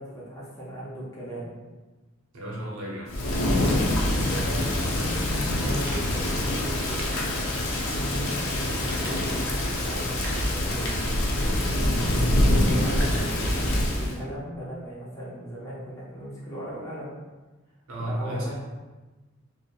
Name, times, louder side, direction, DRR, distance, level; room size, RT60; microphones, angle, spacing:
voice 1, 0.0-1.5 3.5-3.7 4.2-7.1 8.3-11.0 12.2-13.2 13.5-17.1 18.0-18.5, equal, 15° left, -8 dB, 0.5 m, -38 dB
voice 2, 2.3-3.1 4.5-4.7 17.9-18.5, equal, 85° right, -3 dB, 0.6 m, -33 dB
Thunder / Rain, 3.1-14.2, left 1 dB, 75° left, 0.4 m, -25 dB
sound 1, 5.9-6.2 7.0-7.6 8.0-8.1 8.8-9.6 10.2-10.6 10.9-11.0, right 1 dB, 45° right, 0.5 m, -42 dB
2.7 x 2.0 x 2.2 m, 1.2 s
head